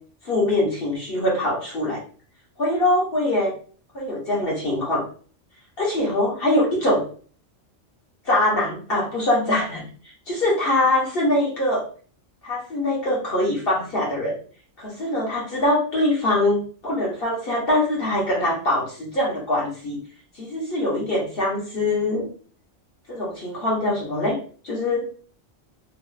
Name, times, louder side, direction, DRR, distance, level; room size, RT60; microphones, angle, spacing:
voice 1, 0.2-2.0 2.6-3.5 4.0-5.0 5.8-7.0 8.2-9.8 10.3-11.8 12.4-14.3 14.8-20.0 20.3-22.3 23.1-24.4 24.6-25.1, left 1 dB, 55° left, -4 dB, 1.2 m, -23 dB
3.1 x 2.3 x 2.4 m, 0.42 s
omnidirectional pair, 1.2 m